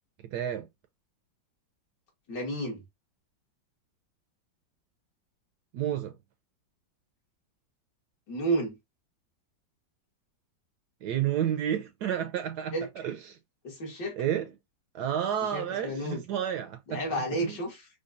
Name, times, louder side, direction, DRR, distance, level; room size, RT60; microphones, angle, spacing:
voice 1, 0.3-0.7 5.7-6.2 11.0-13.4 14.2-14.5 14.9-17.6, right 10 dB, 75° right, 1.0 m, -31 dB
voice 2, 2.3-2.8 8.3-8.7 12.7-12.9 13.6-14.2 15.5-16.2 16.9-17.9, right 1 dB, 65° left, 2.3 m, -31 dB
5.1 x 2.3 x 2.5 m
omnidirectional pair, 2.1 m